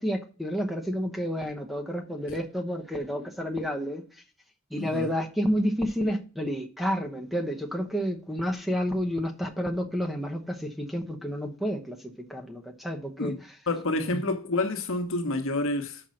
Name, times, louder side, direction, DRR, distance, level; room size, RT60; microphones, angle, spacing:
voice 1, 0.0-4.0 4.7-13.3 14.1-14.2, equal, ahead, 0.9 m, -30 dB
voice 2, 4.8-5.1 13.2-13.4 13.7-16.0, left 2 dB, 70° left, 1.1 m, -28 dB
5.9 x 5.3 x 6.3 m
head